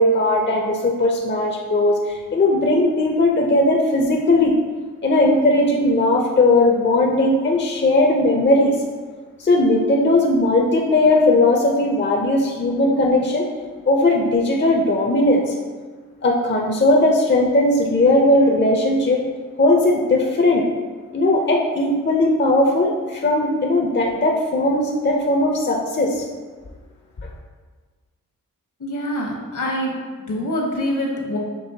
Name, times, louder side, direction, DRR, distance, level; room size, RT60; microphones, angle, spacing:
voice 1, 0.0-4.6 5.0-8.8 9.4-13.5 13.8-15.5 16.2-19.2 19.6-20.6 21.1-26.2, left 2 dB, 35° left, 0 dB, 0.6 m, -18 dB
voice 2, 28.8-29.9 30.3-31.4, equal, 65° left, -2 dB, 1.2 m, -25 dB
6.2 x 3.1 x 2.8 m, 1.5 s
cardioid pair, 45°, 33 cm